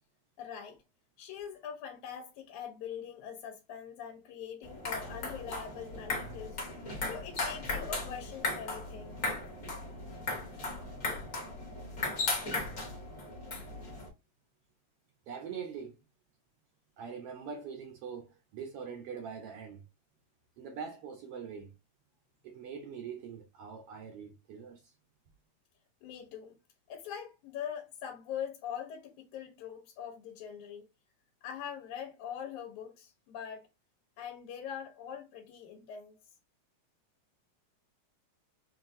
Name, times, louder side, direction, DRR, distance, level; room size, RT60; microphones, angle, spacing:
voice 1, 0.4-0.8 1.2-6.6 7.0-9.2 26.0-26.6 26.9-30.8 31.4-33.7 34.2-36.2, left 8 dB, 85° left, 2.2 m, -43 dB
sound 1, 4.6-14.1, left 3 dB, 40° left, 1.2 m, -37 dB
voice 2, 15.3-16.0 17.0-19.9 20.6-21.8 22.4-24.9, right 6 dB, 75° right, 1.4 m, -43 dB
5.8 x 2.4 x 2.5 m
omnidirectional pair, 3.3 m